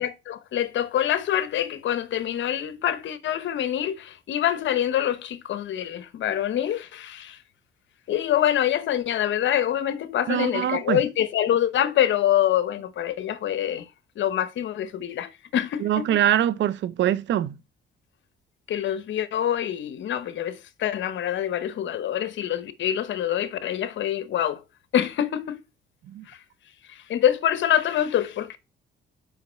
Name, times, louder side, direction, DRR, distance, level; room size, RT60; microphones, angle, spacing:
voice 1, 0.0-7.4 8.1-13.9 14.2-16.2 18.7-24.6 24.9-25.6 26.3-26.4 26.9-28.6, left 11 dB, 70° left, 1.0 m, -25 dB
voice 2, 10.3-11.0 15.8-17.5 26.1-26.2, right 11 dB, 70° right, 0.6 m, -23 dB
5.7 x 5.1 x 5.7 m
cardioid pair, 90°, 20 cm